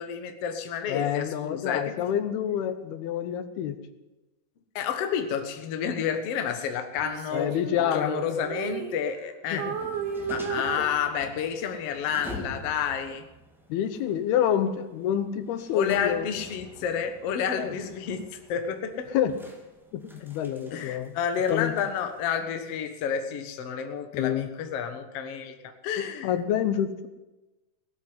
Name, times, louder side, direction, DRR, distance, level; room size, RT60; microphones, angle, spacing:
voice 1, 0.0-1.9 4.8-9.7 10.3-13.3 15.7-19.1 20.7-26.3, left 7 dB, 60° left, 7 dB, 1.8 m, -30 dB
voice 2, 0.9-3.8 7.3-8.4 9.5-9.8 10.6-10.9 13.7-16.3 17.6-17.8 19.1-19.4 19.9-21.1 21.5-21.7 24.1-24.5 26.2-27.1, left 10 dB, 90° left, 11 dB, 3.0 m, -28 dB
Female singing, 7.0-9.3 9.6-11.6, right 7 dB, 65° right, 3.0 m, -34 dB
sound 1, 9.6-22.3, left 1 dB, ahead, 1.0 m, -46 dB
18.0 x 8.0 x 9.5 m, 1.1 s
omnidirectional pair, 4.3 m